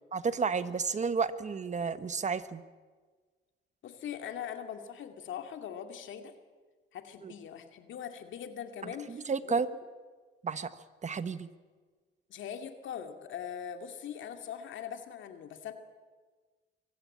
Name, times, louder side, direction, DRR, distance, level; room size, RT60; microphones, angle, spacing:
voice 1, 0.1-2.6 7.2-7.3 8.8-9.7 10.4-10.7 11.0-11.5, right 5 dB, 35° right, 13 dB, 1.1 m, -32 dB
voice 2, 3.8-6.3 6.9-9.6 12.3-15.7, left 8 dB, 75° left, 6 dB, 2.3 m, -41 dB
23.5 x 16.0 x 8.6 m, 1.4 s
cardioid pair, 90°, 20 cm